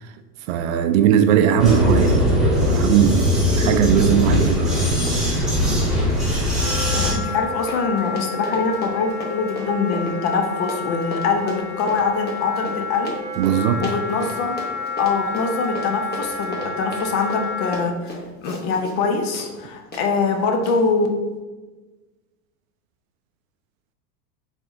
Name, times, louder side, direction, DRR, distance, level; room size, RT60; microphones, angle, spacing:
voice 1, 0.5-4.7 13.4-13.9, right 9 dB, 60° right, 9 dB, 0.5 m, -19 dB
Vehicle, 1.6-7.1, equal, ahead, 1.4 m, -20 dB
Run, 3.5-3.7 4.0-19.0 19.3-19.5 19.9-20.0 20.6-20.8, left 1 dB, 20° left, 1.0 m, -35 dB
Wind instrument woodwind instrument, 6.6-17.9, left 5 dB, 85° left, 1.0 m, -31 dB
voice 2, 7.0-13.1 13.8-14.6 15.0-21.1, left 4 dB, 45° left, 4 dB, 0.8 m, -23 dB
4.3 x 3.5 x 2.6 m, 1.2 s
hypercardioid pair, 95°, 46 cm